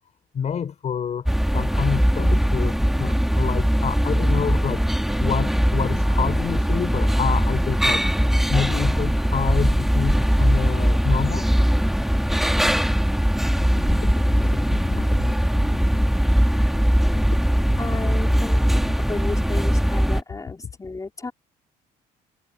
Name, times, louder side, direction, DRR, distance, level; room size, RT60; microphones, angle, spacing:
voice 1, 0.3-8.0 8.5-11.5 13.8-15.3 15.7-15.8 17.1-17.4 17.8-18.4 20.6-20.7, left 7 dB, 45° left, 5.1 m, -28 dB
sound 1, 1.3-20.2, equal, ahead, 2.9 m, -20 dB
voice 2, 17.8-18.8 19.1-21.3, left 3 dB, 20° left, 4.8 m, -33 dB
cardioid pair, 110°, 17 cm